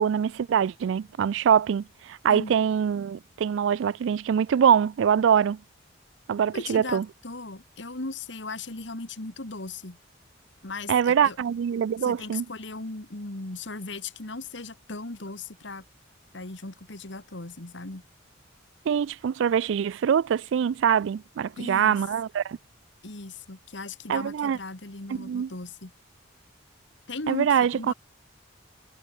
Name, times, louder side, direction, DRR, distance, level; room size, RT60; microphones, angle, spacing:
voice 1, 0.0-5.6 6.3-7.1 10.9-12.5 18.9-22.6 24.1-24.6 25.1-25.5 27.3-27.9, right 8 dB, 70° right, 0.3 m, -24 dB
voice 2, 6.5-10.0 10.6-11.4 12.0-15.8 16.3-18.0 21.6-22.0 23.0-25.9 27.1-27.9, left 3 dB, 65° left, 2.0 m, -37 dB
head